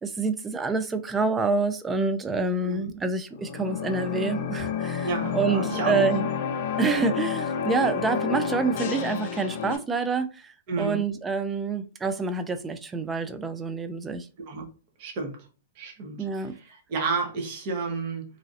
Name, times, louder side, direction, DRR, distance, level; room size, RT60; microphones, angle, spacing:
voice 1, 0.0-6.3 6.8-14.3 16.2-16.6, right 4 dB, 10° right, 0.3 m, -27 dB
sound 1, 3.3-9.8, left 7 dB, 55° left, 0.6 m, -30 dB
voice 2, 5.0-6.1 10.7-11.0 14.5-14.6 15.0-15.4 15.8-18.2, right 4 dB, 45° right, 1.0 m, -31 dB
3.0 x 2.6 x 2.5 m
hypercardioid pair, 140°, 0 cm